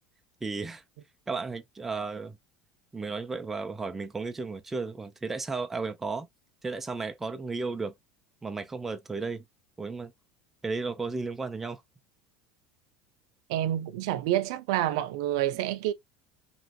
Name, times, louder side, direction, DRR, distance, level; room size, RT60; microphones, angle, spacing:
voice 1, 0.4-0.8 1.3-2.4 2.9-6.3 6.6-7.9 8.4-9.4 9.8-10.1 10.6-11.8, right 4 dB, 10° right, 0.4 m, -34 dB
voice 2, 13.5-15.9, right 13 dB, 80° right, 0.4 m, -28 dB
3.0 x 2.7 x 2.4 m
cardioid pair, 150°, 3 cm